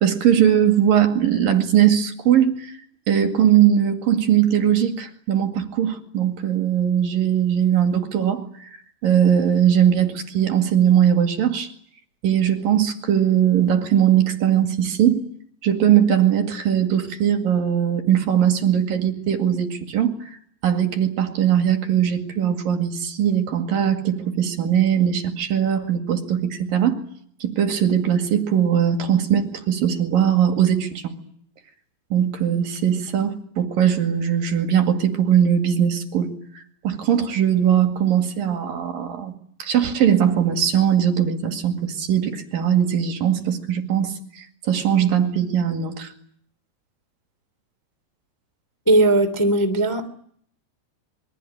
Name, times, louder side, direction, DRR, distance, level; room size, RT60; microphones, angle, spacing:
voice 1, 0.0-2.8 3.1-8.4 9.0-11.7 12.2-15.2 15.6-20.1 20.6-27.0 27.4-31.1 32.1-36.3 36.8-39.3 39.6-46.1, right 9 dB, 55° right, 5 dB, 3.5 m, -20 dB
voice 2, 48.8-50.1, right 2 dB, 5° left, 6 dB, 1.5 m, -18 dB
27.0 x 23.0 x 8.9 m, 0.63 s
omnidirectional pair, 5.1 m